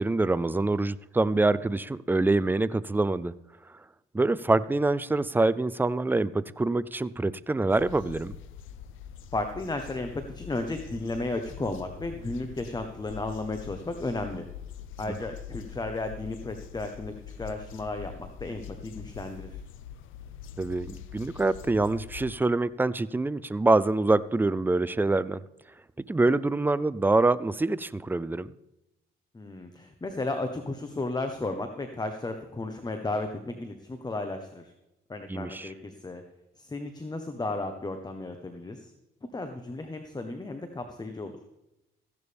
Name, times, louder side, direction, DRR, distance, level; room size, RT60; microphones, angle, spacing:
voice 1, 0.0-3.4 4.1-8.4 20.6-25.4 26.1-28.5 35.3-35.7, right 2 dB, 10° right, 17 dB, 0.4 m, -25 dB
sound 1, 7.7-22.3, left 9 dB, 85° left, 0.7 m, -44 dB
voice 2, 9.3-14.5 15.0-19.6 29.3-34.7 35.1-36.2 36.6-38.9 39.3-41.3, left 2 dB, 20° left, 6 dB, 1.1 m, -34 dB
15.0 x 11.0 x 3.5 m, 0.93 s
cardioid pair, 90°, 20 cm